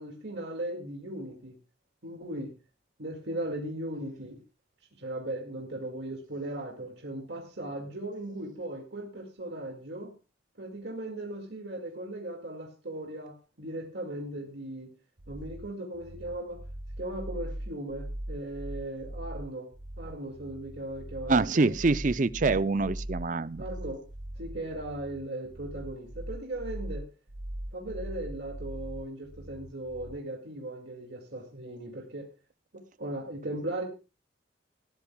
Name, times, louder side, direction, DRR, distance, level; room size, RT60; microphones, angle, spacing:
voice 1, 0.0-1.6 2.0-2.5 3.0-4.4 5.0-10.1 10.6-14.9 15.3-16.6 17.0-19.7 20.0-21.7 23.6-24.0 24.4-27.1 27.7-32.3 32.7-33.8, right 1 dB, 60° right, 2.3 m, -38 dB
sound 1, 15.2-30.2, right 1 dB, 75° right, 1.3 m, -40 dB
voice 2, 21.3-23.6, right 3 dB, 40° right, 0.5 m, -25 dB
21.0 x 12.5 x 2.3 m
head